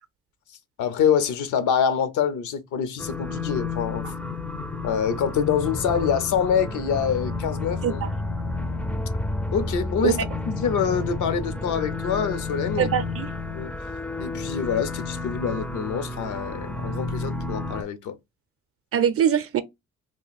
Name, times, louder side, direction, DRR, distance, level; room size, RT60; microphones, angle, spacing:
voice 1, 0.8-4.0 4.8-8.0 9.5-12.9 13.5-13.7 14.2-18.2, left 7 dB, 75° left, 0.7 m, -25 dB
sound 1, 3.0-17.8, left 3 dB, 5° left, 0.4 m, -31 dB
voice 2, 12.8-13.3 18.9-19.6, right 9 dB, 50° right, 0.5 m, -22 dB
2.5 x 2.1 x 3.9 m
cardioid pair, 90°, 30 cm